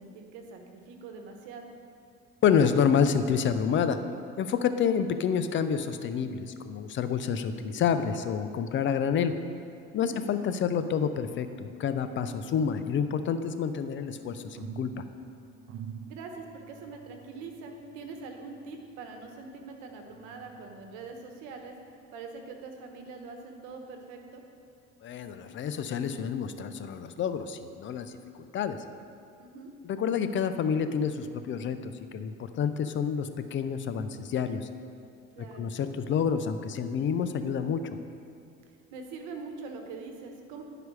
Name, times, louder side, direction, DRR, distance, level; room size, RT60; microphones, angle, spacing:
voice 1, 0.0-1.7 10.0-10.2 16.1-21.8 22.1-24.4 29.4-29.7 35.3-35.7 38.9-40.6, right 4 dB, 85° right, 4 dB, 1.1 m, -43 dB
voice 2, 2.4-4.0 4.4-9.3 9.9-15.0 25.0-28.8 29.8-34.7 35.5-37.8, left 7 dB, 40° left, 10 dB, 0.5 m, -28 dB
sound 1, 13.8-19.6 20.1-21.2 21.7-21.8, right 7 dB, 45° right, 0.5 m, -48 dB
11.0 x 4.9 x 4.7 m, 2.4 s
cardioid pair, 115°, 29 cm